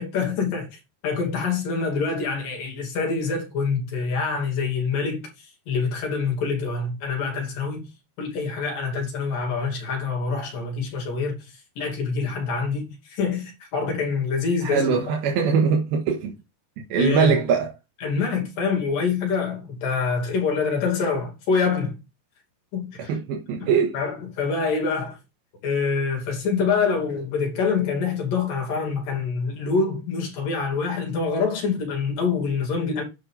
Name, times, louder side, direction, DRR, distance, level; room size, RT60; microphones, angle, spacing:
voice 1, 0.0-5.3 5.7-7.9 8.2-15.1 16.9-17.4 18.0-22.0 22.7-23.1 23.6-25.2 25.6-33.0, left 5 dB, 65° left, 4.5 m, -26 dB
voice 2, 14.6-16.3 16.8-17.7 23.0-24.0, right 6 dB, 80° right, 3.2 m, -22 dB
9.9 x 5.6 x 3.8 m
omnidirectional pair, 4.3 m